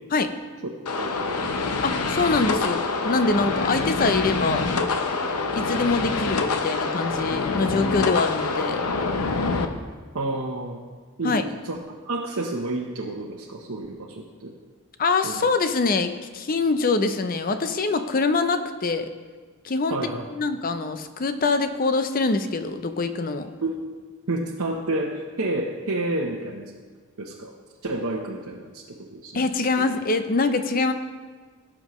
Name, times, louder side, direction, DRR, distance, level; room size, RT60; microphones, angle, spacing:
sound 1, 0.9-9.7, left 4 dB, 85° left, 0.8 m, -26 dB
voice 1, 0.9-1.9 10.1-10.8 11.2-11.8 12.0-14.5 15.2-15.5 19.9-20.2 23.6-23.7 24.3-26.7 27.2-27.5 27.8-29.4, right 2 dB, 70° right, -2 dB, 0.9 m, -30 dB
voice 2, 1.8-4.7 5.5-8.8 11.2-11.4 15.0-19.1 19.6-20.0 20.3-23.5 29.3-30.9, left 3 dB, 40° left, 9 dB, 0.6 m, -24 dB
17.0 x 7.3 x 3.1 m, 1.5 s
head